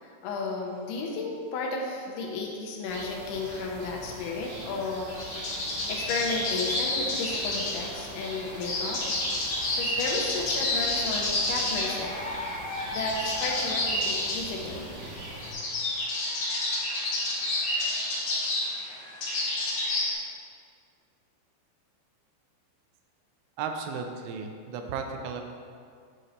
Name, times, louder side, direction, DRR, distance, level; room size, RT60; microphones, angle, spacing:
voice 1, 0.0-5.1 5.9-9.0 9.7-12.1 12.9-14.9, left 3 dB, 80° left, -1 dB, 2.9 m, -33 dB
sound 1, 2.9-15.5, right 1 dB, 65° right, 3.1 m, -42 dB
sound 2, 5.1-20.1, left 1 dB, 60° left, 1.6 m, -30 dB
voice 2, 23.6-25.4, right 5 dB, 85° right, 5 dB, 3.0 m, -34 dB
9.5 x 4.4 x 4.0 m, 2.2 s
omnidirectional pair, 5.5 m